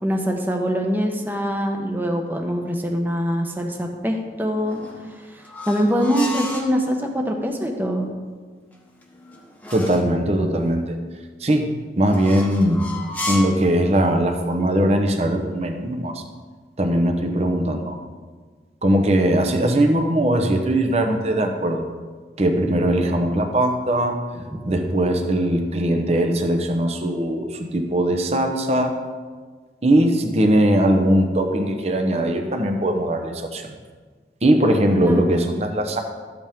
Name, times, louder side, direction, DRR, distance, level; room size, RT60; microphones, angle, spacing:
voice 1, 0.0-4.8 5.3-8.1 24.5-24.6 35.1-35.4, equal, 10° right, 2 dB, 0.9 m, -24 dB
sound 1, 4.6-6.7 8.7-10.2 12.1-13.7, left 1 dB, 10° left, 1.0 m, -33 dB
voice 2, 9.7-11.0 11.4-12.8 13.3-16.2 16.8-18.0 18.8-21.9 22.4-24.2 24.6-29.0 29.8-33.7 34.4-36.0, right 1 dB, 35° right, 4 dB, 0.8 m, -20 dB
12.5 x 8.0 x 3.6 m, 1.5 s
head